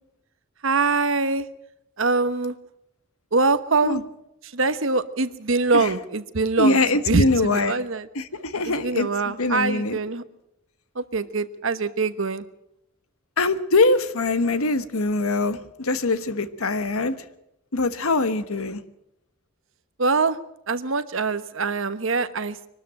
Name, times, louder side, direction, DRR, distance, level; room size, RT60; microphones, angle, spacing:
voice 1, 0.6-1.5 2.0-2.6 3.3-4.0 4.4-6.8 7.1-8.1 8.6-10.2 10.9-12.4 20.0-20.4 20.7-22.6, right 3 dB, 65° right, 12 dB, 1.2 m, -23 dB
voice 2, 6.6-7.8 8.1-9.1 9.4-10.0 13.4-17.1 17.7-18.8, left 2 dB, 85° left, 12 dB, 1.3 m, -23 dB
23.5 x 12.5 x 8.9 m, 0.83 s
head